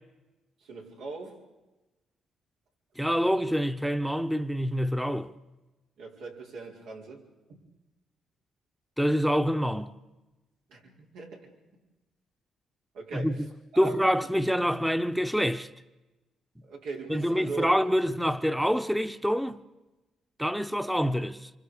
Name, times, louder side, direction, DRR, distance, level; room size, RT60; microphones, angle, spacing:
voice 1, 0.6-1.4 6.0-7.6 10.7-11.5 12.9-13.4 13.7-13.9 16.6-17.8, right 4 dB, 85° right, 4.8 m, -40 dB
voice 2, 3.0-5.3 9.0-9.9 13.1-13.3 13.8-15.7 17.1-19.6 20.4-21.5, equal, ahead, 1.0 m, -26 dB
27.5 x 25.5 x 5.1 m
cardioid pair, 90°, 0 cm